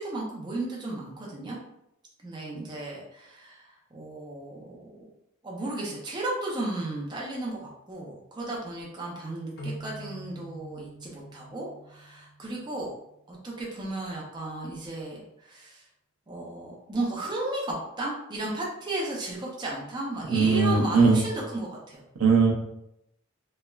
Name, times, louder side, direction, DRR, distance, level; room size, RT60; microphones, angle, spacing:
voice 1, 0.0-1.6 2.2-5.0 5.4-12.9 13.3-15.8 16.3-22.0, right 2 dB, 20° right, -3 dB, 0.4 m, -34 dB
sound 1, 9.6-13.1, right 1 dB, 50° left, 0.5 m, -43 dB
voice 2, 20.3-21.2 22.2-22.5, right 4 dB, 70° right, 1 dB, 0.5 m, -20 dB
3.1 x 2.0 x 2.2 m, 0.81 s
head